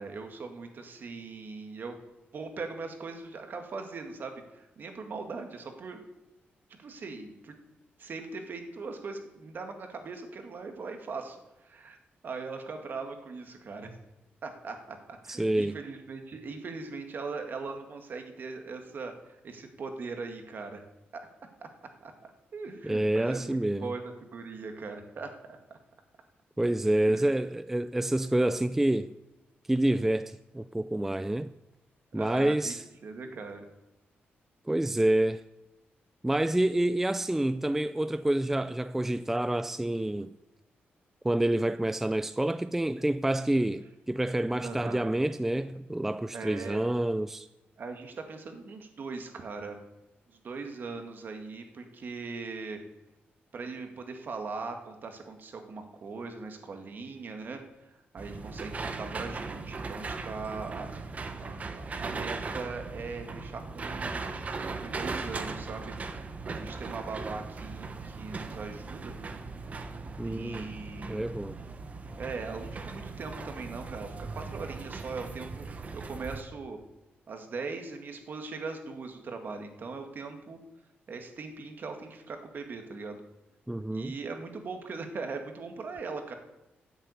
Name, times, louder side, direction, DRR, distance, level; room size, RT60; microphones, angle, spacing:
voice 1, 0.0-2.0 2.3-6.0 6.7-7.6 8.0-12.0 12.2-13.9 14.4-20.8 21.1-21.3 21.6-21.7 22.0-25.6 27.1-27.3 32.1-32.7 33.0-33.6 44.6-45.0 46.3-46.8 47.8-49.8 50.3-52.8 53.5-61.0 61.4-65.9 66.5-69.1 70.2-71.3 72.1-75.7 75.9-76.8 77.3-80.6 81.1-83.2 83.9-86.3, right 4 dB, 55° right, 1.9 m, -40 dB
voice 2, 15.3-15.8 22.8-23.9 26.6-29.1 29.7-31.5 32.1-32.8 34.7-35.4 36.2-40.3 41.2-47.5 70.2-70.7 71.1-71.6 83.7-84.1, right 1 dB, 10° right, 0.3 m, -28 dB
sound 1, 58.2-76.4, right 4 dB, 35° right, 1.1 m, -38 dB
10.5 x 8.1 x 8.3 m
cardioid pair, 115°, 4 cm